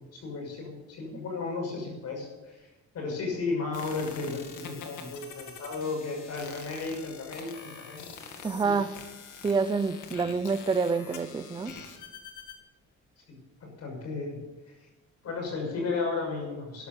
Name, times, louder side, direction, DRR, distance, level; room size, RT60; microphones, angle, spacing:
voice 1, 0.0-2.7 2.9-8.1 8.6-8.7 13.3-14.4 15.2-16.9, left 4 dB, 55° left, 1 dB, 6.2 m, -34 dB
sound 1, 3.7-12.6, left 6 dB, 80° left, 2.3 m, -45 dB
voice 2, 8.4-8.9 9.4-11.7, right 4 dB, 15° right, 11 dB, 0.4 m, -27 dB
13.5 x 11.5 x 6.8 m, 1.1 s
cardioid pair, 170°, 30 cm